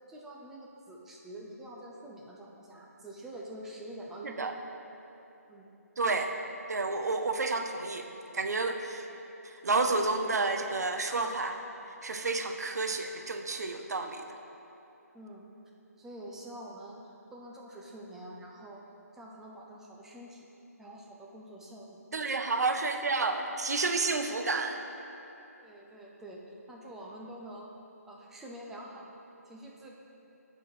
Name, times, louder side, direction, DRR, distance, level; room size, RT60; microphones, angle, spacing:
voice 1, 0.1-4.5 5.5-5.7 15.1-15.5 16.0-17.0 17.3-18.8 19.1-20.5 20.8-22.0 25.6-27.7 28.1-29.1 29.5-29.9, right 1 dB, 5° right, -3 dB, 0.4 m, -46 dB
voice 2, 6.0-6.3 6.7-8.1 8.3-9.1 9.4-11.6 12.0-14.3 22.1-24.8, right 3 dB, 80° right, 6 dB, 0.6 m, -30 dB
8.8 x 4.5 x 4.6 m, 3.0 s
hypercardioid pair, 155°, 9 cm